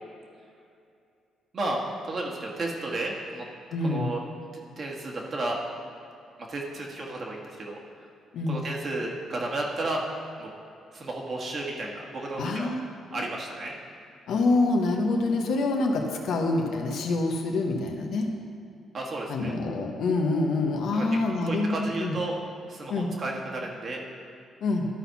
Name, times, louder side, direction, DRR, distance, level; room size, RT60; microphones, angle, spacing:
voice 1, 1.5-3.4 3.8-4.2 4.8-5.6 6.5-7.8 8.5-10.0 10.4-10.5 10.9-12.7 13.1-13.7 18.9-19.5 20.9-21.1 21.5-22.3 22.7-24.0, right 2 dB, 45° right, -1 dB, 1.5 m, -32 dB
voice 2, 3.7-4.1 8.3-8.6 12.4-12.8 13.1-13.2 14.3-18.3 19.3-22.1 22.9-23.1 24.6-24.9, left 2 dB, 75° left, 2 dB, 1.0 m, -26 dB
12.0 x 4.2 x 5.7 m, 2.5 s
cardioid pair, 90°, 0 cm